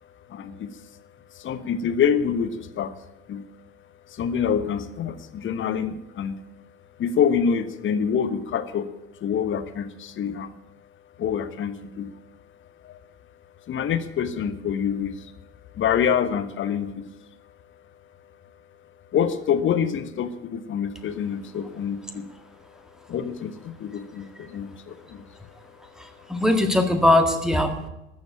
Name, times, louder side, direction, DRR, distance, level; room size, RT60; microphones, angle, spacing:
voice 1, 0.3-0.7 1.3-2.9 3.3-3.4 4.1-6.4 7.0-8.9 9.2-10.6 11.2-12.1 12.8-13.0 13.7-15.3 15.7-17.1 19.1-22.3 23.1-25.2, left 7 dB, 30° left, 11 dB, 1.2 m, -26 dB
voice 2, 26.0-27.9, left 1 dB, ahead, 6 dB, 1.9 m, -21 dB
13.5 x 7.6 x 9.4 m, 0.92 s
figure-of-eight pair, 70°, 37 cm